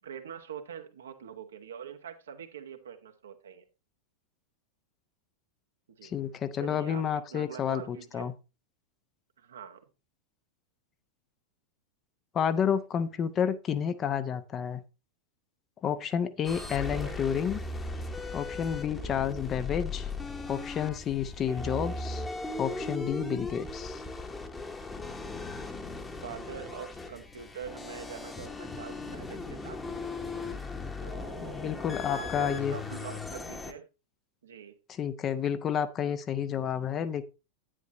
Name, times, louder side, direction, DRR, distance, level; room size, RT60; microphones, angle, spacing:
voice 1, 0.0-3.6 5.9-6.2 6.6-8.3 9.4-9.8 16.7-17.2 19.0-19.4 21.4-21.8 23.4-23.8 26.2-30.0 31.0-33.9 34.4-34.8, right 8 dB, 65° right, 1.2 m, -44 dB
voice 2, 6.0-8.3 12.3-14.8 15.8-17.6 18.3-20.1 20.5-22.3 22.6-24.0 31.4-32.8 35.0-37.2, left 8 dB, 30° left, 0.8 m, -30 dB
sound 1, 16.4-33.7, left 3 dB, 10° left, 1.2 m, -38 dB
9.9 x 9.3 x 3.0 m
figure-of-eight pair, 90°, 0 cm